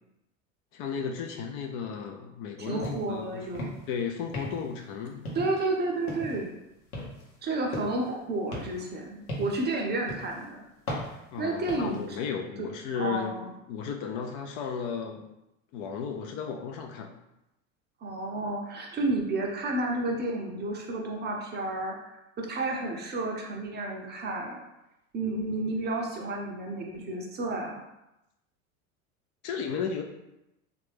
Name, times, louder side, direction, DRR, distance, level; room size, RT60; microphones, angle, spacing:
voice 1, 0.7-3.5 3.9-5.3 11.3-13.4 13.7-15.2 15.7-17.1 29.4-30.0, left 6 dB, 45° left, 3 dB, 0.5 m, -34 dB
voice 2, 2.6-3.7 5.3-6.5 7.4-10.6 11.4-12.2 12.6-12.7 13.0-13.5 18.0-24.6 25.1-27.8, right 2 dB, 25° right, 0 dB, 0.6 m, -31 dB
sound 1, 2.8-3.1 3.4-3.9 4.3-4.8 5.2-5.7 6.1-6.5 6.9-8.1 8.5-9.7 10.1-10.4 10.9-12.0, left 1 dB, 85° left, 1.0 m, -37 dB
3.2 x 2.5 x 3.3 m, 0.89 s
hypercardioid pair, 85°, 43 cm